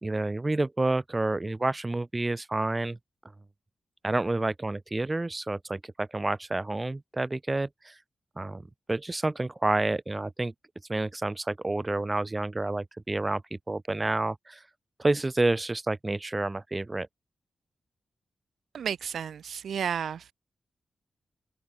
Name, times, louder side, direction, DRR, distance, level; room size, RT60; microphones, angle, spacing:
voice 1, 0.0-3.0 4.0-7.9 8.4-8.6 8.9-10.5 10.9-14.6 15.0-17.1, right 2 dB, 20° right, 2.5 m, -29 dB
voice 2, 18.7-20.3, right 8 dB, 85° right, 0.9 m, -32 dB
open air
wide cardioid pair, 140°, 0 cm